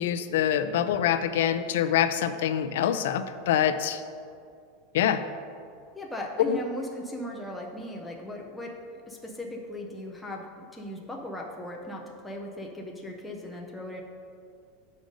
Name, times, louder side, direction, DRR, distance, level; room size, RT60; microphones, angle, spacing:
voice 1, 0.0-4.0 4.9-5.2 6.4-6.6, left 10 dB, 70° left, 10 dB, 0.4 m, -25 dB
voice 2, 5.9-14.0, left 1 dB, 5° left, -2 dB, 0.5 m, -38 dB
7.5 x 5.2 x 5.1 m, 2.4 s
supercardioid pair, 175°, 0 cm